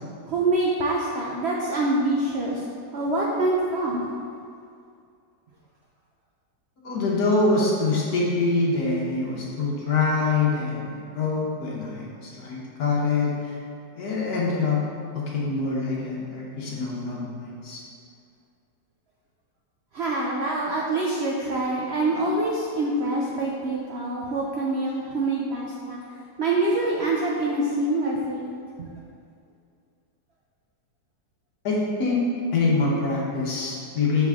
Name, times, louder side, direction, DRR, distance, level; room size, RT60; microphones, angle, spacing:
voice 1, 0.3-2.6 2.9-4.0 19.9-26.0 26.4-28.5 28.8-28.9, right 2 dB, 90° right, -2 dB, 0.5 m, -25 dB
voice 2, 6.8-13.6 13.9-14.8 15.1-17.8 31.6-32.2 32.5-34.3, left 3 dB, 60° left, -4 dB, 1.5 m, -25 dB
7.0 x 4.2 x 3.6 m, 2.3 s
omnidirectional pair, 1.9 m